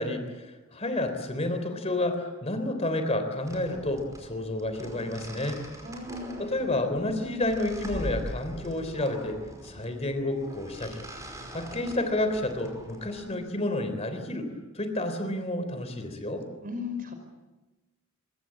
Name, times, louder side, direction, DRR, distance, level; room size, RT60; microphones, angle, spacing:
voice 1, 0.0-5.6 6.4-11.0 11.5-14.5 14.7-16.4, left 1 dB, 30° left, 8 dB, 3.5 m, -30 dB
sound 1, 3.5-13.3, equal, 15° right, 5.2 m, -42 dB
voice 2, 5.8-6.6 16.6-17.1, left 4 dB, 40° right, 7 dB, 5.6 m, -36 dB
25.0 x 23.0 x 8.6 m, 1.1 s
head